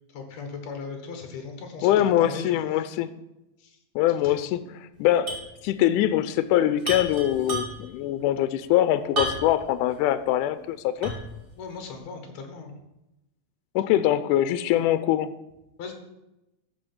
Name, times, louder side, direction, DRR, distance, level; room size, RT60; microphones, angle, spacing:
voice 1, 0.1-2.7 3.6-3.8 4.2-4.5 11.6-12.7 15.8-15.9, left 4 dB, 60° left, 5 dB, 2.6 m, -38 dB
voice 2, 1.8-3.1 4.0-11.1 13.8-15.3, left 12 dB, 85° left, 13 dB, 2.1 m, -23 dB
sound 1, 5.3-5.5 5.8-5.9 6.8-8.0 9.2-9.7 10.2-10.3 11.0-11.4, right 2 dB, 20° right, 2.3 m, -31 dB
13.5 x 4.6 x 6.1 m, 0.93 s
omnidirectional pair, 3.6 m